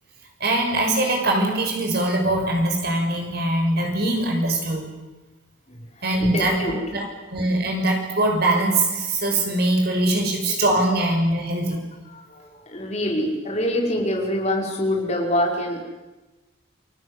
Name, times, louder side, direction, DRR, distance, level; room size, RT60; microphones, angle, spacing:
voice 1, 0.4-4.9 6.0-11.8, right 1 dB, 50° right, 2 dB, 6.4 m, -22 dB
voice 2, 6.2-6.8 12.1-15.8, left 1 dB, 35° left, 0 dB, 5.5 m, -25 dB
29.5 x 20.5 x 8.4 m, 1.1 s
head